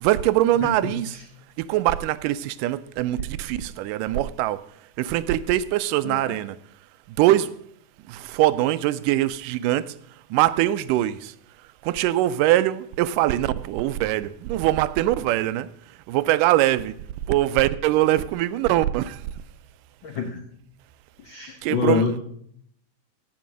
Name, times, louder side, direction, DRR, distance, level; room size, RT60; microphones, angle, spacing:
voice 1, 0.0-1.2 1.6-4.6 5.0-6.6 7.2-7.6 8.1-10.0 10.3-11.3 11.8-15.7 16.1-16.9 17.3-19.2 21.6-22.1, right 14 dB, 85° right, 2.2 m, -22 dB
voice 2, 0.6-0.9 6.0-6.4 20.0-20.4 21.2-22.2, left 5 dB, 85° left, 1.0 m, -26 dB
16.0 x 5.4 x 6.1 m
omnidirectional pair, 3.7 m